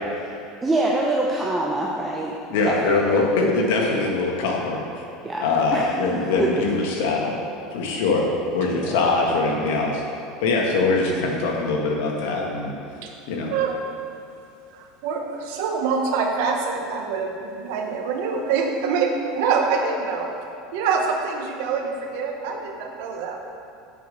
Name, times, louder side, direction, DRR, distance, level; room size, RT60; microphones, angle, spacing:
voice 1, 0.6-2.3 2.6-3.2 5.2-5.4 5.7-5.9 6.4-6.6 8.9-9.0, right 2 dB, 10° right, -3 dB, 0.7 m, -24 dB
voice 2, 2.5-4.8 5.4-7.4 7.7-10.0 10.4-12.7 13.3-13.5, left 3 dB, 80° left, -1 dB, 1.6 m, -22 dB
voice 3, 15.0-20.3 20.7-23.5, right 5 dB, 70° right, 2 dB, 1.2 m, -25 dB
7.5 x 5.1 x 6.4 m, 2.7 s
supercardioid pair, 145°, 0 cm